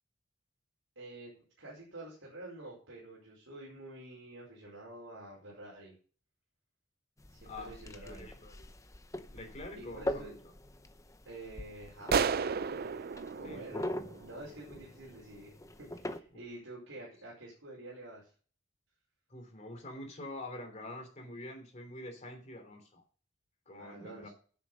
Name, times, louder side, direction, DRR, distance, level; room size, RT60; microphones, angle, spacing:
voice 1, 0.9-5.9 7.3-8.3 9.7-10.3 11.2-12.9 13.3-15.5 15.8-18.3 23.8-24.3, right 2 dB, 75° right, -4 dB, 4.9 m, -48 dB
sound 1, 7.2-16.2, left 1 dB, 15° left, 0.7 m, -43 dB
voice 2, 7.4-8.7 9.3-10.4 13.4-13.6 19.3-23.0 23.7-24.3, left 1 dB, 35° left, 4 dB, 3.0 m, -46 dB
sound 2, 12.1-14.7, right 6 dB, 50° right, 0.5 m, -33 dB
10.0 x 7.5 x 6.3 m, 0.41 s
head